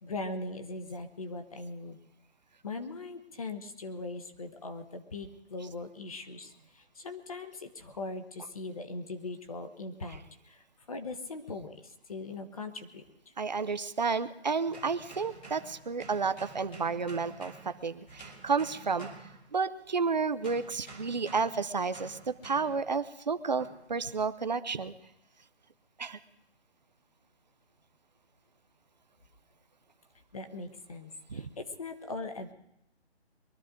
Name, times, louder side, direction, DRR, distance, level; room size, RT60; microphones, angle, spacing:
voice 1, 0.0-2.0 2.6-13.3 30.3-32.5, left 3 dB, 30° left, 7 dB, 1.1 m, -40 dB
voice 2, 13.4-19.1 19.5-24.9 26.0-26.2 31.3-31.5, right 5 dB, 40° right, 12 dB, 0.7 m, -31 dB
sound 1, 14.7-19.9 20.4-22.9 23.6-23.9, right 3 dB, 10° left, 1.0 m, -50 dB
23.0 x 12.5 x 3.7 m, 0.83 s
hypercardioid pair, 170°, 33 cm